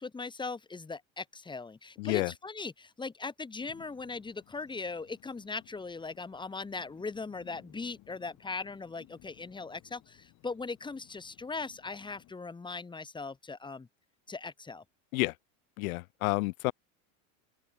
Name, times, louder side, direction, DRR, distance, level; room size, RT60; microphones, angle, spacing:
voice 1, 0.0-13.9 14.3-14.8, left 4 dB, 10° left, 3.4 m, -39 dB
voice 2, 2.0-2.3 15.1-15.3 15.8-16.7, left 23 dB, 90° left, 0.8 m, -29 dB
sound 1, 3.6-12.3, left 18 dB, 45° left, 5.7 m, -60 dB
open air
supercardioid pair, 150°, 41 cm